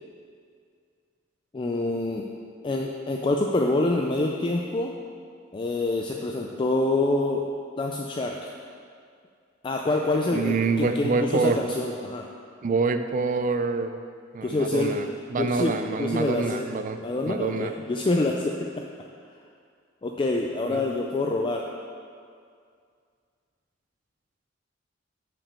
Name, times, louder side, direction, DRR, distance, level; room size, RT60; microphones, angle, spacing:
voice 1, 1.5-2.2 2.6-4.9 5.5-7.4 7.8-8.5 9.6-12.3 14.4-14.9 15.4-16.7 17.0-18.7 20.0-21.7, left 2 dB, 25° left, 0 dB, 0.4 m, -26 dB
voice 2, 10.3-11.6 12.6-13.9 14.3-17.0 17.3-17.7 20.7-20.8, right 4 dB, 45° right, 8 dB, 0.4 m, -26 dB
5.8 x 5.2 x 6.8 m, 2.2 s
head